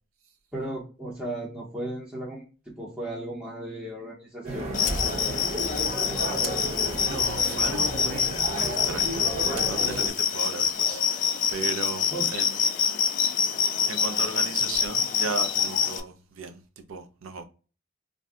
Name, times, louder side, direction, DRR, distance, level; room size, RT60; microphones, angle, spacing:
voice 1, 0.5-2.4 2.8-5.5 12.1-12.2, right 1 dB, 5° right, 0.7 m, -36 dB
sound 1, 4.4-10.1, right 1 dB, 35° right, 0.8 m, -32 dB
sound 2, 4.7-16.0, left 7 dB, 40° left, 0.3 m, -26 dB
voice 2, 7.0-9.3 9.6-11.2 11.5-12.5 13.9-17.4, right 4 dB, 80° right, 0.5 m, -36 dB
2.6 x 2.1 x 3.5 m
head